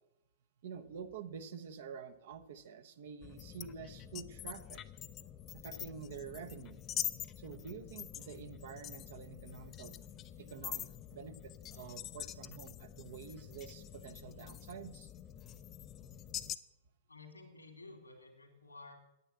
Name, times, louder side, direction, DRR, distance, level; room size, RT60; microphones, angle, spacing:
voice 1, 0.6-4.8 5.5-6.8 7.4-10.0 10.4-15.1, right 6 dB, 60° right, 9 dB, 1.0 m, -48 dB
sound 1, 3.2-16.6, left 11 dB, 30° left, 0.5 m, -45 dB
voice 2, 17.1-18.9, left 3 dB, 90° left, 3 dB, 2.7 m, -53 dB
9.7 x 9.2 x 6.9 m, 0.91 s
figure-of-eight pair, 105°, 0 cm